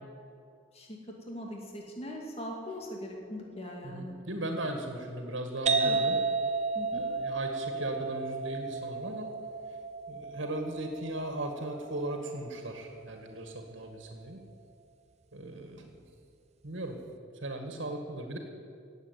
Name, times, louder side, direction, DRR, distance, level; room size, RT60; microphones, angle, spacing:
voice 1, 1.3-4.1 4.4-4.5 5.8-6.0 6.7-7.0, left 1 dB, 30° left, 0 dB, 2.3 m, -40 dB
voice 2, 3.8-6.2 6.9-9.3 10.1-14.4 15.3-16.0 16.6-17.0 17.4-18.4, right 1 dB, 75° right, 4 dB, 1.8 m, -37 dB
sound 1, 5.7-13.1, right 4 dB, 35° right, 0.7 m, -33 dB
18.0 x 8.0 x 9.3 m, 2.4 s
head